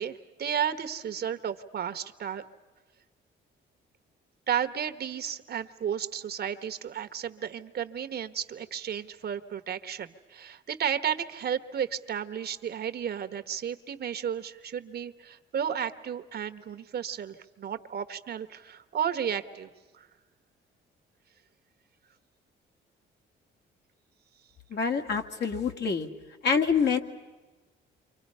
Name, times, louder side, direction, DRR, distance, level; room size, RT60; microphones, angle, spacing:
voice 1, 0.0-2.4 4.5-19.7 19.9-20.1, right 8 dB, 55° right, 9 dB, 1.2 m, -33 dB
voice 2, 24.7-26.1 26.4-27.0, left 5 dB, 60° left, 4 dB, 2.1 m, -26 dB
29.0 x 25.5 x 5.5 m, 1.2 s
cardioid pair, 90°, 20 cm